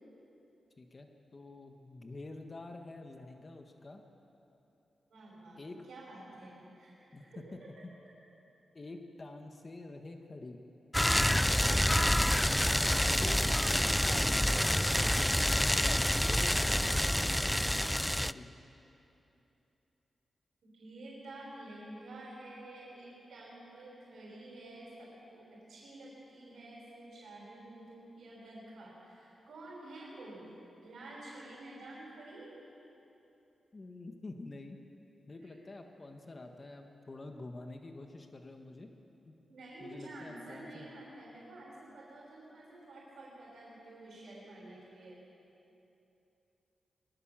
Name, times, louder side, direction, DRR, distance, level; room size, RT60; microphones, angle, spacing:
voice 1, 0.8-4.0 5.6-5.8 7.1-7.2 7.5-7.6 8.7-10.6 12.8-13.4 13.7-15.2 16.3-18.5 33.7-34.8 35.3-38.9 39.2-39.3 39.8-40.9, left 2 dB, 35° left, 4 dB, 1.6 m, -48 dB
voice 2, 5.1-5.6 5.9-7.4 7.8-7.9 20.6-30.6 30.8-32.5 35.4-35.5 39.5-45.2, right 1 dB, 80° right, -5 dB, 6.0 m, -50 dB
sound 1, 10.9-18.3, left 1 dB, 5° left, 0.4 m, -28 dB
22.0 x 19.5 x 7.5 m, 2.9 s
wide cardioid pair, 100°, 0 cm